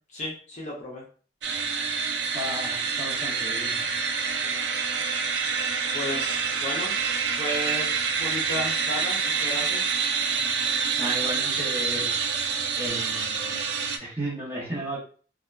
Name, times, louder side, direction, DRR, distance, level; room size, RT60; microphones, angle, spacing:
voice 1, 0.1-1.0 4.3-4.6 5.9-6.9 7.3-10.0, equal, 40° left, -3 dB, 0.6 m, -34 dB
sound 1, 1.4-14.0, right 5 dB, 65° right, 0.3 m, -27 dB
voice 2, 2.3-4.0 11.0-12.2 12.8-13.7 14.0-15.0, right 1 dB, 10° right, -8 dB, 1.0 m, -34 dB
2.7 x 2.2 x 2.2 m, 0.42 s
head